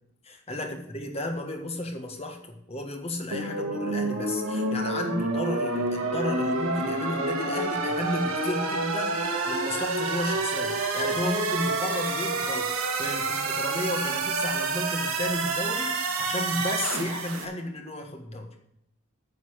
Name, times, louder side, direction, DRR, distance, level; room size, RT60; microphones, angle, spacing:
voice 1, 0.2-12.7 13.0-18.5, left 1 dB, 30° left, 3 dB, 1.5 m, -33 dB
sound 1, 3.3-17.4, right 3 dB, 80° right, 1.8 m, -28 dB
9.8 x 5.5 x 8.0 m, 0.78 s
head